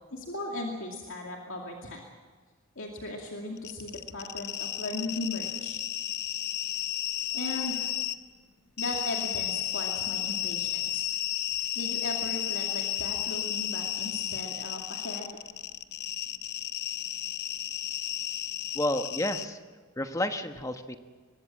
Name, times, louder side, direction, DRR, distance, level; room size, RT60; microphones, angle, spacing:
voice 1, 0.1-2.0 2.8-5.8 7.3-7.9 8.8-11.0 11.8-15.3, left 2 dB, 70° left, 0 dB, 2.6 m, -37 dB
sound 1, 3.6-8.2 8.8-19.5, left 12 dB, 50° left, 0.9 m, -33 dB
voice 2, 18.7-19.6 20.0-21.0, left 1 dB, 15° left, 7 dB, 1.2 m, -30 dB
24.5 x 21.5 x 7.5 m, 1.4 s
head